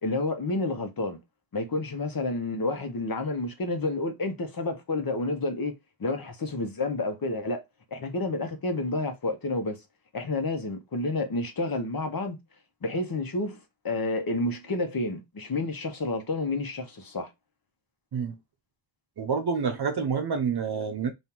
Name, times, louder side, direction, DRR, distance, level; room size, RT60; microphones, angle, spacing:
voice 1, 0.0-1.2 1.5-5.7 6.0-7.6 7.9-9.8 10.1-12.4 12.8-13.6 13.8-17.3, left 2 dB, 50° left, 1.1 m, -30 dB
voice 2, 19.2-21.1, right 6 dB, 55° right, 0.7 m, -28 dB
3.8 x 2.7 x 4.4 m
wide cardioid pair, 95°, 46 cm